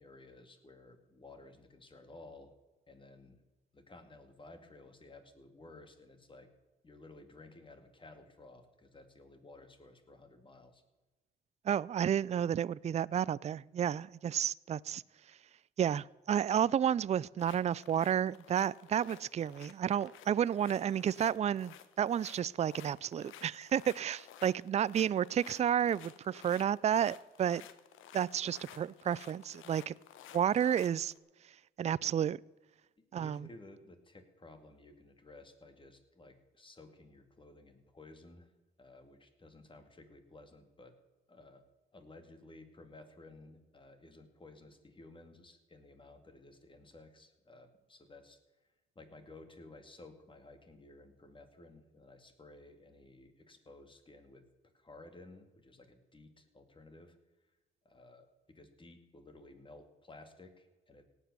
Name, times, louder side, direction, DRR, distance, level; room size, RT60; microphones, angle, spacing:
voice 1, 0.0-2.5 2.9-3.4 3.7-6.5 6.8-10.8 33.0-38.5 38.8-41.0 41.3-41.6 41.9-48.4 49.0-54.4 54.7-57.2 57.8-61.0, left 2 dB, 25° left, 8 dB, 2.3 m, -55 dB
voice 2, 11.6-15.0 15.8-27.6 28.1-29.9 30.3-31.1 31.8-32.4 33.1-33.5, right 9 dB, 35° right, 21 dB, 0.4 m, -31 dB
sound 1, 17.4-31.2, left 10 dB, 85° left, 1.0 m, -54 dB
17.5 x 8.1 x 6.9 m, 1.2 s
cardioid pair, 90°, 20 cm